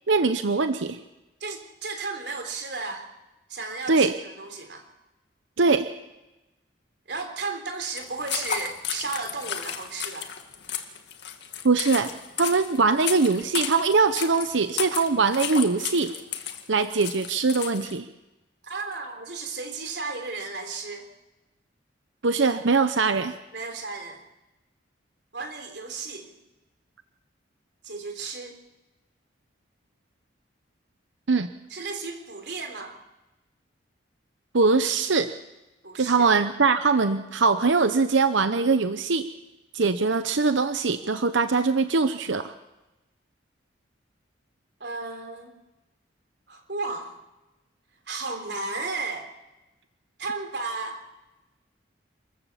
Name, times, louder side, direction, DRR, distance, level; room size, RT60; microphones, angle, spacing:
voice 1, 0.1-1.0 3.9-4.1 5.6-5.9 11.6-16.1 16.7-18.1 22.2-23.3 31.3-31.5 34.5-35.3 36.0-39.3 39.7-42.5, right 4 dB, 80° right, 10 dB, 0.8 m, -22 dB
voice 2, 1.4-3.1 3.5-4.8 7.1-10.3 18.6-21.1 23.5-24.2 25.3-26.4 27.8-28.6 31.7-33.0 35.8-36.3 44.8-45.5 46.5-47.1 48.1-49.3 50.2-51.0, right 3 dB, 60° right, 5 dB, 3.6 m, -34 dB
sound 1, 8.0-18.0, left 9 dB, 65° left, 2.0 m, -33 dB
27.5 x 14.5 x 7.3 m, 1.0 s
head